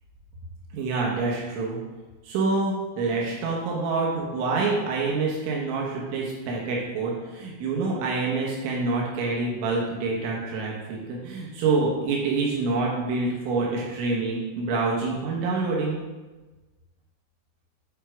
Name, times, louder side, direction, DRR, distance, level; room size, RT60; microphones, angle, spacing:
voice 1, 0.7-1.8 2.2-16.0, right 3 dB, 80° right, -3 dB, 3.5 m, -26 dB
9.8 x 4.7 x 4.5 m, 1.2 s
omnidirectional pair, 5.4 m